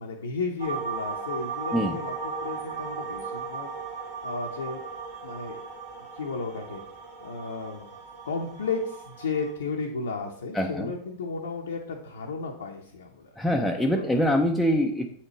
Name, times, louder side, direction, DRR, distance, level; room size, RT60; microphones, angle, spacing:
voice 1, 0.0-3.7 4.2-4.8 5.2-5.6 6.1-6.8 7.2-7.9 8.2-13.3 13.9-14.1, left 4 dB, 70° left, -1 dB, 0.7 m, -33 dB
sound 1, 0.6-9.5, right 5 dB, 60° right, 2.2 m, -36 dB
voice 2, 10.5-10.9 13.4-15.1, equal, 5° left, 1 dB, 0.5 m, -24 dB
7.9 x 4.3 x 3.0 m, 0.66 s
figure-of-eight pair, 90°, 0 cm